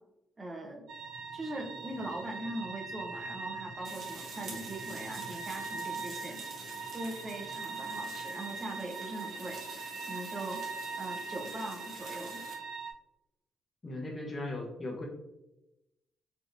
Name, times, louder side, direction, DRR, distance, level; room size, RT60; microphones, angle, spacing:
voice 1, 0.4-0.8 1.3-6.4 6.9-9.6 10.1-10.6 11.0-12.4, right 1 dB, 25° right, 2 dB, 0.6 m, -41 dB
sound 1, 0.9-12.9, right 4 dB, 80° right, 0.5 m, -41 dB
sound 2, 3.8-12.5, right 3 dB, 55° right, 1.0 m, -48 dB
voice 2, 13.8-15.0, left 2 dB, 30° left, 0 dB, 0.7 m, -37 dB
3.3 x 2.8 x 2.5 m, 0.94 s
cardioid pair, 90°, 0 cm